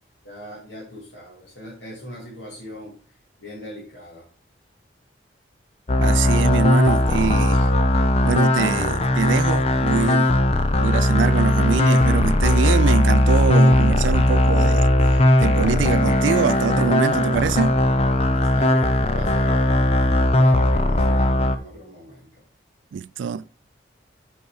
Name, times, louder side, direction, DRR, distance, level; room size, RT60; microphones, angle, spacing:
voice 1, 0.2-2.9 3.4-4.3 18.3-22.4, equal, 85° left, 2.5 m, -39 dB
sound 1, 5.9-21.6, left 1 dB, 35° left, 0.6 m, -18 dB
voice 2, 6.0-7.7 8.2-10.3 10.8-14.9 15.4-17.7 22.9-23.4, right 6 dB, 90° right, 0.3 m, -24 dB
8.1 x 4.7 x 4.7 m
head